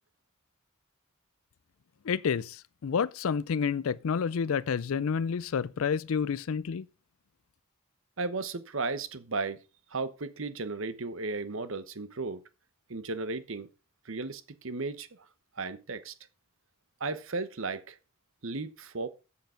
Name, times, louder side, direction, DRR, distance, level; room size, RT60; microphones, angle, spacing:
voice 1, 2.0-6.9, left 6 dB, 80° left, 0.4 m, -29 dB
voice 2, 8.2-9.6 9.9-12.4 12.9-13.7 14.0-15.1 15.6-16.1 17.0-18.0 18.4-19.1, right 3 dB, 70° right, 1.0 m, -35 dB
8.0 x 7.0 x 5.7 m
head